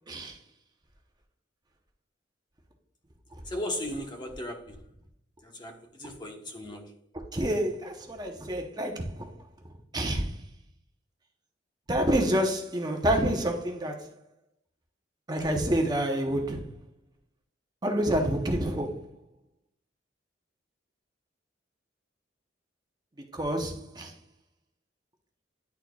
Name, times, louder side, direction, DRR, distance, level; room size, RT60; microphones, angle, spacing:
voice 1, 0.1-0.4 7.1-9.4 9.9-10.4 11.9-14.2 15.3-16.7 17.8-19.1 23.2-24.2, right 1 dB, 20° right, 0.8 m, -28 dB
voice 2, 3.4-4.8 5.4-7.0, left 1 dB, 25° left, 1.0 m, -37 dB
10.5 x 4.3 x 2.3 m
head